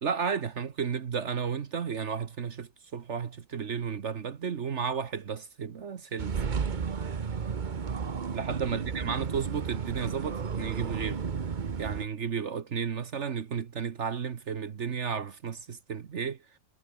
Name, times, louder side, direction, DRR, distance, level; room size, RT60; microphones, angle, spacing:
voice 1, 0.0-6.4 8.3-11.2 11.8-16.4, right 6 dB, 55° right, 1.4 m, -33 dB
sound 1, 6.2-12.0, right 6 dB, 35° right, 1.0 m, -33 dB
omnidirectional pair, 1.5 m